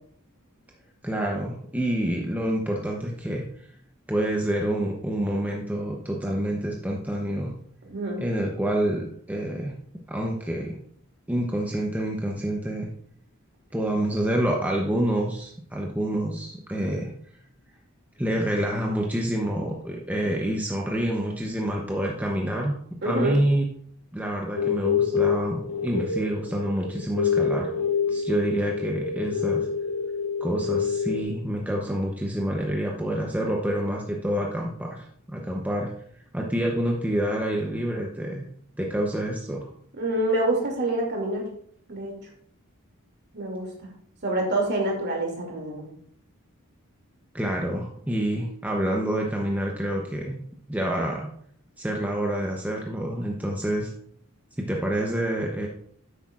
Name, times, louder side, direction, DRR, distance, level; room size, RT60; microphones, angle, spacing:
voice 1, 1.0-3.4 4.1-7.5 8.2-9.7 10.1-10.8 11.3-12.9 13.7-17.1 18.2-23.6 24.1-27.7 28.1-29.7 30.4-35.9 36.3-38.5 38.8-39.7 47.3-50.4 50.7-51.3 51.8-53.9 54.6-55.7, right 1 dB, 5° right, -1 dB, 0.8 m, -27 dB
voice 2, 7.8-8.2 23.0-23.4 40.0-41.5 41.9-42.2 43.3-43.7 44.2-45.9, right 1 dB, 50° right, 0 dB, 2.5 m, -26 dB
sound 1, 24.6-31.2, left 6 dB, 90° left, 1.0 m, -26 dB
10.0 x 8.2 x 2.5 m, 0.64 s
head